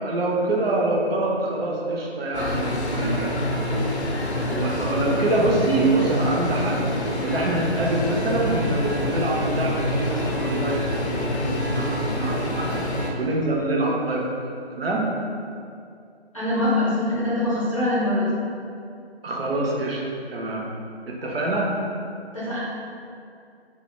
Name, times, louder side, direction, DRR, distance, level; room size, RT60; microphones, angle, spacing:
voice 1, 0.0-3.3 4.4-6.9 7.2-12.8 13.2-14.2 14.7-15.1 19.2-20.0 20.3-20.7 21.1-21.7, right 2 dB, 65° right, -2 dB, 0.5 m, -25 dB
sound 1, 2.3-13.1, left 1 dB, 90° left, 0.5 m, -26 dB
voice 2, 16.3-18.3 22.3-22.6, left 1 dB, 30° left, -9 dB, 0.6 m, -23 dB
2.1 x 2.0 x 3.0 m, 2.4 s
figure-of-eight pair, 160°, 33 cm